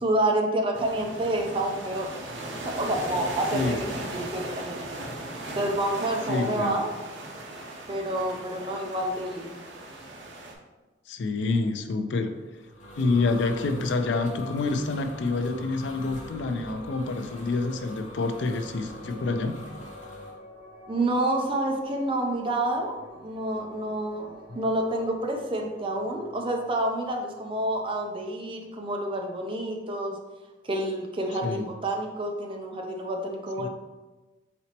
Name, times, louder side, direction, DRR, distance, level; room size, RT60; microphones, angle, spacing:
voice 1, 0.0-2.1 2.6-4.8 5.5-6.9 7.9-9.6 20.9-30.2 30.6-33.7, right 1 dB, 30° right, 2 dB, 0.5 m, -28 dB
sound 1, 0.7-10.5, right 1 dB, 80° right, 0.7 m, -38 dB
voice 2, 6.3-6.8 11.1-12.4 13.0-19.6 31.4-31.7 33.6-33.7, left 3 dB, 75° left, 8 dB, 0.4 m, -27 dB
sound 2, 12.3-20.3, left 1 dB, 40° left, 0.9 m, -43 dB
sound 3, 16.3-29.2, equal, 10° right, 1.1 m, -50 dB
4.2 x 4.1 x 2.9 m, 1.2 s
head